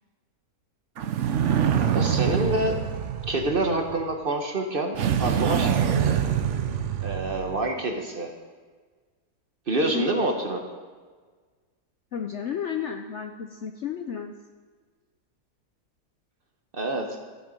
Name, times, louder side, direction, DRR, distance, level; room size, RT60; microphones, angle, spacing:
sound 1, 1.0-4.0 4.9-7.7, right 8 dB, 60° right, 0.9 m, -25 dB
voice 1, 1.9-2.8 3.3-5.7 7.0-8.3 9.7-10.6 16.7-17.1, right 2 dB, 40° right, 4 dB, 1.1 m, -26 dB
voice 2, 9.9-10.4 12.1-14.3, left 7 dB, 65° left, 6 dB, 0.7 m, -32 dB
14.0 x 8.0 x 5.2 m, 1.5 s
omnidirectional pair, 1.7 m